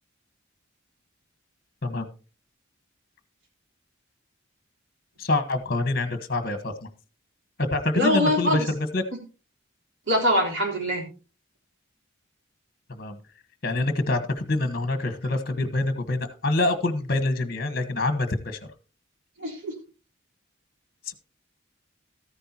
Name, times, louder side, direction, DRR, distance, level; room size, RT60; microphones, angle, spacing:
voice 1, 5.2-6.9 7.7-9.0 12.9-13.2 13.6-18.6 21.1-21.2, left 2 dB, 50° left, 10 dB, 1.2 m, -26 dB
voice 2, 7.9-8.7 10.1-11.0 19.4-19.7, left 1 dB, 70° right, -1 dB, 3.8 m, -23 dB
14.0 x 10.0 x 2.9 m, 0.35 s
head